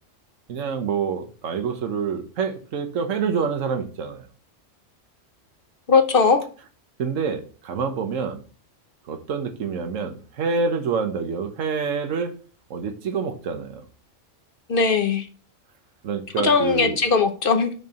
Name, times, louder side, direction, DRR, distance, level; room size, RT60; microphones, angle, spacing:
voice 1, 0.5-4.3 7.0-8.4 9.1-12.3 12.7-13.8 16.0-17.0, right 5 dB, 80° right, 7 dB, 1.3 m, -27 dB
voice 2, 5.9-6.4 14.7-15.3 16.4-17.7, left 5 dB, 50° left, 7 dB, 0.8 m, -19 dB
6.6 x 4.4 x 6.4 m, 0.38 s
omnidirectional pair, 1.3 m